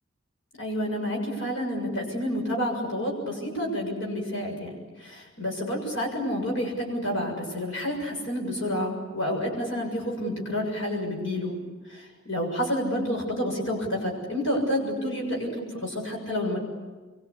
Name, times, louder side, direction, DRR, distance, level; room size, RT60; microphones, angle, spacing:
voice 1, 0.6-11.6 11.9-16.6, equal, 85° left, 0 dB, 6.8 m, -29 dB
27.0 x 23.5 x 8.3 m, 1.3 s
head